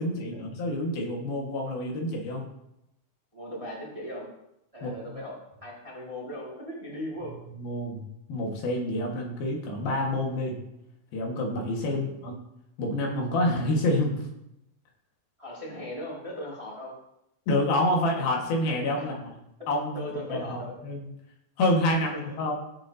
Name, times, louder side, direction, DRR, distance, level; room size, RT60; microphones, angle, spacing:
voice 1, 0.0-2.5 4.8-5.0 7.2-10.6 11.1-12.4 12.8-14.2 17.5-19.3 19.7-20.0 20.3-21.1 21.6-22.5, left 1 dB, 80° left, 0 dB, 3.6 m, -28 dB
voice 2, 3.3-4.3 4.7-7.4 11.9-12.1 15.4-16.9 18.9-19.1 19.9-20.7 22.1-22.2, left 1 dB, 10° right, -5 dB, 1.7 m, -38 dB
16.0 x 7.9 x 2.8 m, 0.84 s
omnidirectional pair, 4.2 m